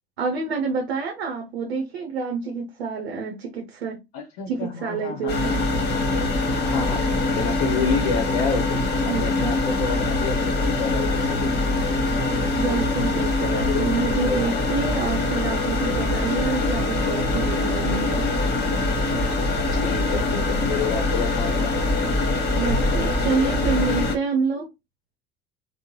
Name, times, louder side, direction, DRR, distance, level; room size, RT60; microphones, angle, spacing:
voice 1, 0.2-4.0 4.5-5.7 6.5-6.7 9.1-9.5 12.6-18.3 22.6-24.7, right 5 dB, 75° right, 0.7 m, -28 dB
voice 2, 4.1-5.3 6.5-11.7 13.4-14.6 19.8-21.8 23.4-23.7, left 6 dB, 65° left, 0.8 m, -29 dB
sound 1, 5.3-24.2, left 2 dB, 35° left, 1.2 m, -23 dB
3.6 x 2.1 x 2.9 m
figure-of-eight pair, 70°, 31 cm